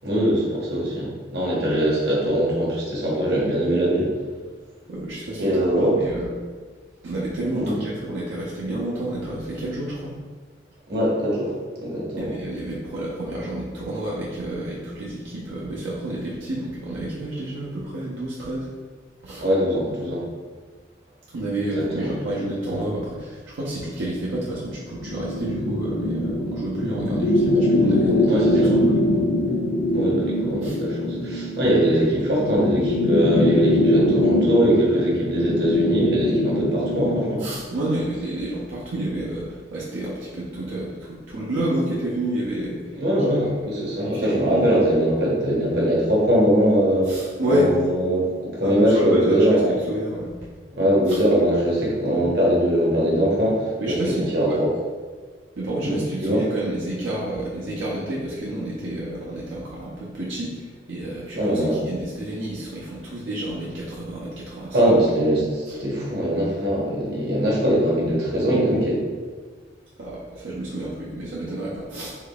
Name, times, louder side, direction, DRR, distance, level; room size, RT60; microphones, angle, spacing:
voice 1, 0.0-4.1 5.4-6.0 7.5-7.7 10.9-12.3 19.4-20.2 21.7-22.2 28.2-28.7 29.9-37.4 42.9-47.1 47.5-49.7 50.7-54.5 55.9-56.4 61.3-61.8 64.7-69.0, equal, 60° right, -5 dB, 1.0 m, -21 dB
voice 2, 4.9-6.3 7.0-10.1 12.2-18.7 19.2-19.4 21.3-29.3 30.6-30.8 37.4-42.9 44.0-44.8 47.1-47.7 48.6-49.4 49.9-50.4 51.1-51.2 53.8-54.6 55.6-65.0 70.0-72.1, right 1 dB, 80° right, -6 dB, 0.6 m, -29 dB
sound 1, 24.9-37.4, left 1 dB, 70° left, 0.5 m, -22 dB
3.6 x 3.5 x 2.3 m, 1.5 s
head